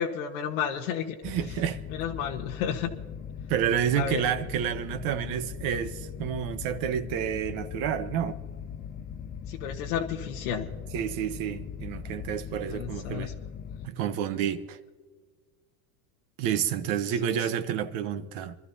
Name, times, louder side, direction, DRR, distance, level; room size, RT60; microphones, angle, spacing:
voice 1, 0.0-1.1 1.9-2.9 3.9-4.2 9.5-10.7 12.6-13.3 17.2-17.5, left 8 dB, 70° left, 1.4 m, -32 dB
sound 1, 1.2-13.9, left 8 dB, 20° left, 0.4 m, -40 dB
voice 2, 1.2-1.8 3.5-8.4 10.9-13.3 13.8-14.8 16.4-18.6, right 9 dB, 50° right, 1.1 m, -29 dB
27.0 x 13.5 x 2.8 m
supercardioid pair, 130°, 45 cm